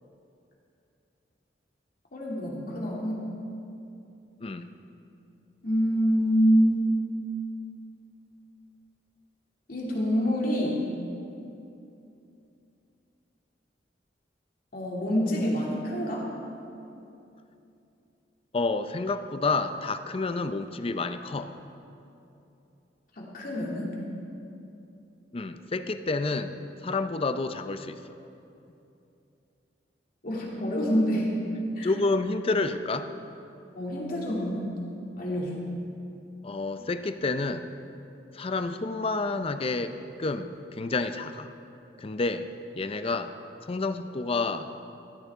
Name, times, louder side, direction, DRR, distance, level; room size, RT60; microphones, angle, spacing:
voice 1, 2.1-3.2 5.6-6.8 9.7-10.8 14.7-16.3 23.1-23.9 30.2-31.3 31.8-31.9 33.7-34.6 35.2-35.6, equal, 55° left, -4 dB, 2.6 m, -26 dB
voice 2, 4.4-4.7 18.5-21.5 25.3-26.5 26.8-28.0 31.8-33.1 36.4-37.7 38.3-41.5 42.0-42.5 42.7-43.3 43.7-44.7, left 3 dB, 30° left, 10 dB, 0.5 m, -29 dB
16.0 x 13.0 x 3.6 m, 2.8 s
head